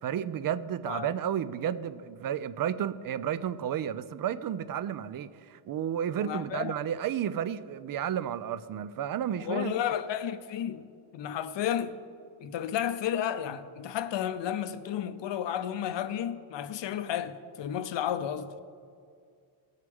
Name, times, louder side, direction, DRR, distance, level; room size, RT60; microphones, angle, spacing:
voice 1, 0.0-9.7, right 9 dB, 45° right, 0.4 m, -32 dB
voice 2, 6.2-6.8 9.4-10.9 11.1-12.0 12.4-18.6, left 10 dB, 60° left, 0.7 m, -32 dB
17.5 x 6.6 x 3.5 m
cardioid pair, 100°, 50 cm